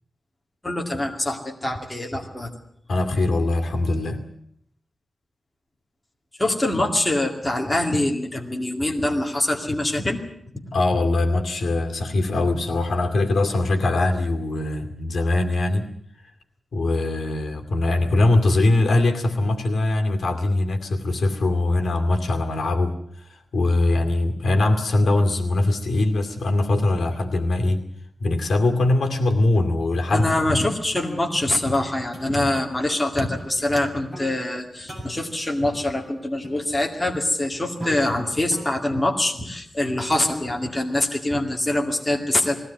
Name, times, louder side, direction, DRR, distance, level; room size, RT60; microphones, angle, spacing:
voice 1, 0.6-2.5 6.4-10.2 30.1-42.6, left 1 dB, 10° left, 1 dB, 2.3 m, -24 dB
voice 2, 2.9-4.2 10.7-15.9 16.7-23.0 23.5-27.8 28.2-30.3, left 2 dB, 65° left, 5 dB, 2.5 m, -21 dB
sound 1, 29.8-41.3, right 1 dB, 10° right, 6.3 m, -43 dB
20.5 x 16.5 x 9.4 m, 0.68 s
wide cardioid pair, 170°, 0 cm